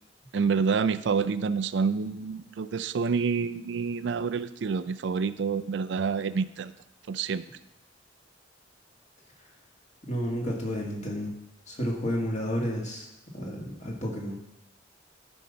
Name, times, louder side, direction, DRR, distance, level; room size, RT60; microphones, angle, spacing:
voice 1, 0.3-6.7 7.1-7.4, right 5 dB, 65° right, 14 dB, 0.4 m, -28 dB
voice 2, 10.1-11.3 11.7-13.1 13.3-14.4, equal, 40° left, -1 dB, 2.1 m, -31 dB
12.5 x 5.4 x 5.7 m, 0.84 s
head